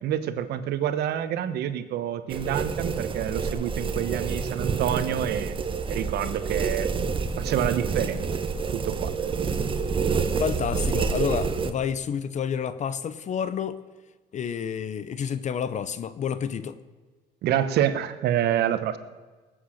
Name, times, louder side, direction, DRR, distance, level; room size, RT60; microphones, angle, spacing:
voice 1, 0.0-5.6 5.9-6.9 7.4-8.3 8.7-9.1 9.4-9.5 17.4-19.0, right 10 dB, 75° right, 12 dB, 1.1 m, -27 dB
sound 1, 2.3-11.7, right 5 dB, 30° right, 1.0 m, -28 dB
voice 2, 10.4-13.8 14.3-16.8, left 7 dB, 45° left, 14 dB, 0.7 m, -29 dB
19.5 x 8.1 x 6.5 m, 1.3 s
cardioid pair, 110°, 17 cm